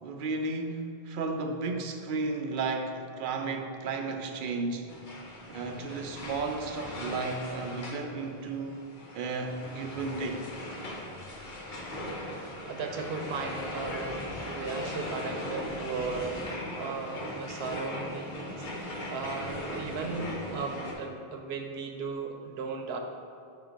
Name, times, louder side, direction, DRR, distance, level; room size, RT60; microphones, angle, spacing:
voice 1, 0.0-4.9 5.5-8.8 9.1-10.5, right 3 dB, 60° right, 4 dB, 0.7 m, -33 dB
sound 1, 4.9-20.9, left 1 dB, 55° left, 0.9 m, -39 dB
voice 2, 12.7-16.5 16.8-23.0, right 4 dB, 90° right, 4 dB, 0.9 m, -36 dB
5.1 x 3.8 x 5.0 m, 2.5 s
omnidirectional pair, 1.0 m